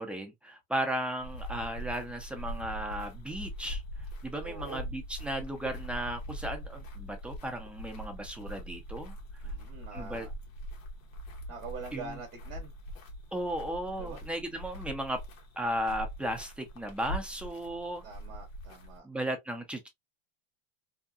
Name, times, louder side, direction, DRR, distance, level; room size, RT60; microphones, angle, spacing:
voice 1, 0.0-3.8 4.2-9.1 9.9-10.3 11.9-12.2 13.3-15.2 15.6-18.0 19.0-19.9, right 1 dB, 5° right, 0.4 m, -35 dB
sound 1, 1.2-19.0, equal, 85° left, 1.0 m, -42 dB
voice 2, 4.4-4.9 9.4-10.3 11.5-12.7 14.0-14.2 18.0-19.1, right 4 dB, 30° right, 0.7 m, -44 dB
2.7 x 2.2 x 2.3 m
supercardioid pair, 125°, 39 cm